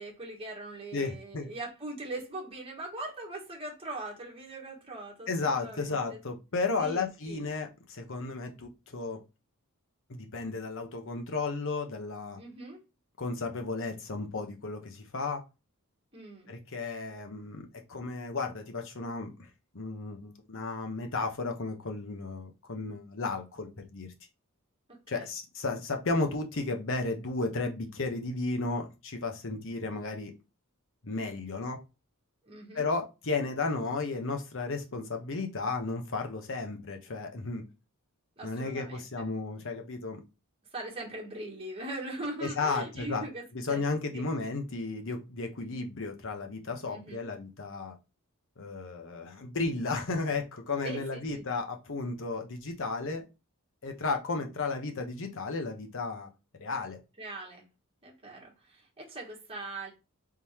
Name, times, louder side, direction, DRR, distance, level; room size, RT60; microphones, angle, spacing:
voice 1, 0.0-6.2 6.8-7.4 12.4-12.8 16.1-16.5 25.1-25.3 32.4-32.9 38.4-39.2 40.7-43.8 44.1-44.3 46.9-47.2 50.8-51.4 57.2-57.7 58.0-59.9, right 2 dB, 25° right, 1.4 m, -41 dB
voice 2, 0.9-1.5 5.3-9.2 10.1-12.4 13.2-15.4 16.5-19.5 19.7-24.1 25.1-30.3 31.0-31.8 32.7-37.6 38.4-40.2 42.4-43.2 43.5-48.0 48.6-53.2 53.8-56.3 56.6-57.0, left 3 dB, 60° left, 1.0 m, -34 dB
3.8 x 3.3 x 4.3 m
head